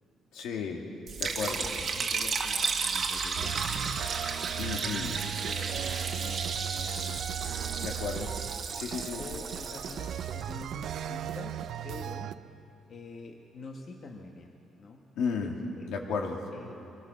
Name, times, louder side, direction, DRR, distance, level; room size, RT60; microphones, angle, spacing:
voice 1, 0.3-0.8 1.2-1.7 4.6-5.2 7.8-8.3 8.7-9.2 15.2-15.5 15.9-16.4, left 5 dB, 75° left, 1 dB, 2.4 m, -33 dB
Liquid, 1.1-11.3, right 5 dB, 40° right, 1.6 m, -34 dB
voice 2, 1.4-4.0 4.5-7.3 7.7-8.0 9.2-11.6 11.8-12.3 12.9-15.0 15.8-15.9 16.5-16.7, left 3 dB, 40° left, 1 dB, 1.4 m, -46 dB
sound 1, 3.4-12.3, right 10 dB, 55° right, 0.5 m, -37 dB
23.0 x 20.0 x 6.4 m, 3.0 s
cardioid pair, 160°, 0 cm